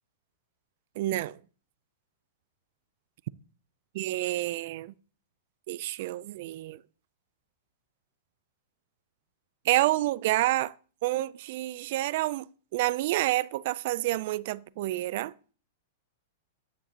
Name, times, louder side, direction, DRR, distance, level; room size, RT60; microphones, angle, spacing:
voice 1, 1.0-1.4 3.9-4.9 5.7-6.8 9.7-10.7 11.0-12.5 12.7-15.3, right 16 dB, 60° right, 0.4 m, -28 dB
10.5 x 9.7 x 2.9 m
hypercardioid pair, 130°, 0 cm